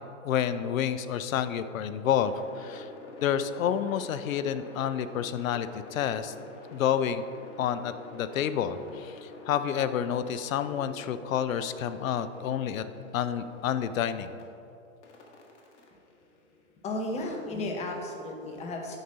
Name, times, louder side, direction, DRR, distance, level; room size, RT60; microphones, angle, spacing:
voice 1, 0.2-2.9 3.2-6.3 6.7-7.3 7.6-12.8 13.1-14.3, left 9 dB, 75° left, 12 dB, 0.6 m, -29 dB
sound 1, 2.0-14.4 15.0-17.2, left 4 dB, 55° left, 1.5 m, -48 dB
voice 2, 16.8-19.0, left 2 dB, 15° left, 2 dB, 0.8 m, -34 dB
9.2 x 4.0 x 5.1 m, 2.6 s
hypercardioid pair, 130°, 40 cm